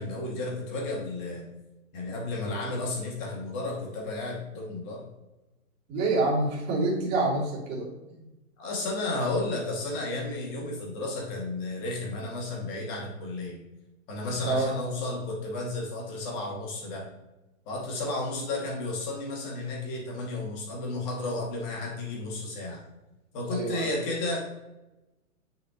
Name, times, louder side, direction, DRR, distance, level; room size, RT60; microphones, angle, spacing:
voice 1, 0.0-1.5 1.9-5.0 8.6-13.6 14.1-17.0 17.7-22.8 23.3-24.4, left 2 dB, 35° left, -2 dB, 2.3 m, -32 dB
voice 2, 5.9-7.9 14.4-14.8 23.5-23.9, right 2 dB, 25° right, -5 dB, 2.7 m, -27 dB
8.3 x 6.6 x 3.0 m, 1.0 s
hypercardioid pair, 150°, 41 cm